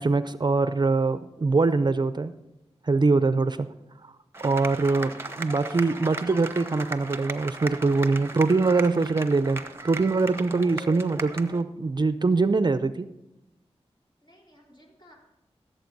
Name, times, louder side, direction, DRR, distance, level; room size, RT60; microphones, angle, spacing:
voice 1, 0.0-2.3 2.8-3.7 4.4-13.1, right 3 dB, 40° right, 13 dB, 0.5 m, -23 dB
sound 1, 4.3-11.6, right 2 dB, 20° right, 0.9 m, -37 dB
voice 2, 4.8-5.5 14.2-15.1, equal, 45° left, -3 dB, 3.7 m, -55 dB
16.0 x 7.8 x 4.0 m, 0.95 s
wide cardioid pair, 65°, 11 cm